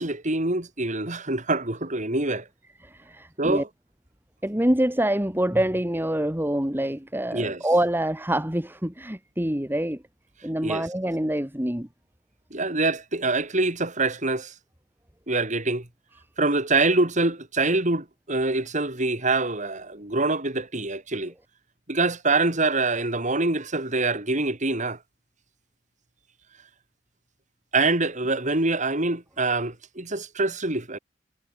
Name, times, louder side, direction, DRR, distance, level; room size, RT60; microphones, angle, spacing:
voice 1, 0.0-2.5 3.4-3.7 7.3-7.6 10.6-10.9 12.5-14.5 15.3-15.9 16.4-21.3 21.9-25.0 27.7-31.0, right 2 dB, 40° right, 4.8 m, -25 dB
voice 2, 2.8-3.6 4.4-10.0 10.4-11.9, right 1 dB, 10° right, 2.6 m, -25 dB
head